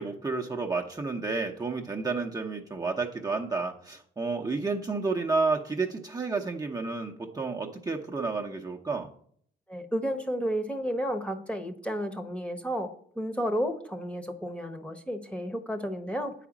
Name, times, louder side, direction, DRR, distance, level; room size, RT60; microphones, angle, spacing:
voice 1, 0.0-9.1, right 4 dB, 20° right, 0 dB, 0.9 m, -31 dB
voice 2, 9.7-16.3, equal, 5° left, 6 dB, 1.1 m, -32 dB
9.2 x 5.0 x 7.2 m, 0.62 s
cardioid pair, 90°, 20 cm